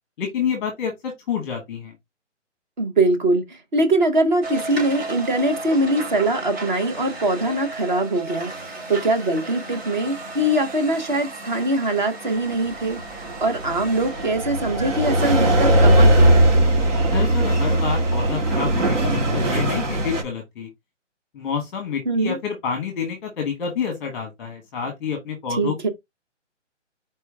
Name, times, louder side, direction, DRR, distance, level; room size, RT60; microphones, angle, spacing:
voice 1, 0.2-1.9 17.1-20.7 21.3-25.9, left 6 dB, 10° left, 1.0 m, -28 dB
voice 2, 2.8-16.4 22.0-22.4 25.6-25.9, right 1 dB, 40° right, 1.1 m, -22 dB
sound 1, 4.4-14.3, right 2 dB, 55° right, 2.7 m, -35 dB
sound 2, 12.7-20.2, right 1 dB, 75° right, 2.2 m, -19 dB
4.4 x 3.0 x 3.5 m
hypercardioid pair, 165°, 37 cm